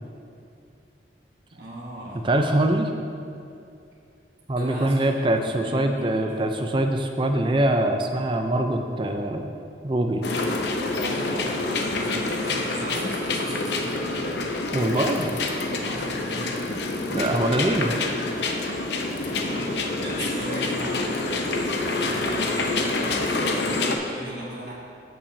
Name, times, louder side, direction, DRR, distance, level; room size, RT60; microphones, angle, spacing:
voice 1, 1.5-2.3 4.6-6.3 11.0-14.3 15.8-16.7 18.9-24.7, right 1 dB, 65° right, -6 dB, 1.4 m, -38 dB
voice 2, 2.2-2.9 4.5-9.5 9.8-10.2 14.7-15.3 17.1-18.0, right 1 dB, 25° right, 5 dB, 0.5 m, -23 dB
sound 1, 10.2-24.0, left 2 dB, 70° left, 0.7 m, -27 dB
15.0 x 5.8 x 2.7 m, 2.5 s
head